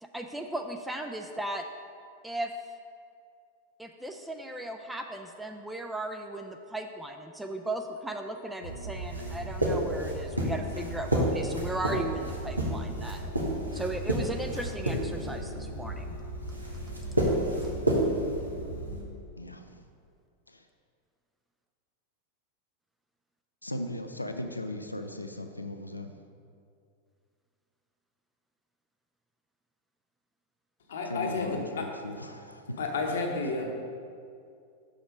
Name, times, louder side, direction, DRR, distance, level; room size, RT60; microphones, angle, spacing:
voice 1, 0.0-1.6 2.2-2.5 3.8-13.3 13.7-16.2 16.5-16.6, right 1 dB, 5° right, 4 dB, 0.3 m, -36 dB
sound 1, 8.6-19.0, right 1 dB, 85° right, 1.0 m, -31 dB
voice 2, 19.4-19.8 20.5-20.6 23.6-26.2 31.1-32.8, left 1 dB, 85° left, 7 dB, 0.4 m, -38 dB
voice 3, 30.9-31.8 32.8-33.7, left 3 dB, 60° left, 2 dB, 0.9 m, -31 dB
5.9 x 5.0 x 5.2 m, 2.4 s
figure-of-eight pair, 90°, 0 cm